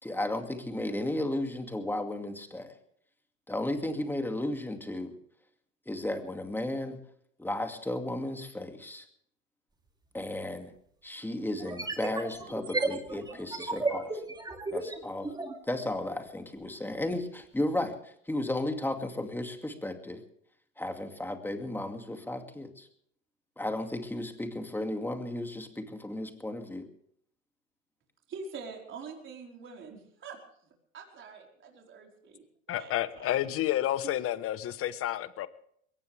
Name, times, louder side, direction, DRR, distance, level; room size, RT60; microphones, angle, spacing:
voice 1, 0.0-2.7 3.5-5.1 5.9-7.0 7.4-9.0 10.1-10.7 11.0-14.2 14.7-15.3 15.7-20.2 20.8-22.9 23.6-26.9, left 1 dB, 5° left, 2.4 m, -34 dB
sound 1, 10.2-10.3 11.6-15.6, right 3 dB, 10° right, 2.5 m, -33 dB
voice 2, 28.3-30.4 30.9-32.4 32.8-33.4 34.0-34.1, right 5 dB, 30° right, 4.7 m, -45 dB
voice 3, 32.7-35.5, left 13 dB, 35° left, 1.2 m, -30 dB
21.5 x 18.5 x 3.5 m
hypercardioid pair, 115°, 39 cm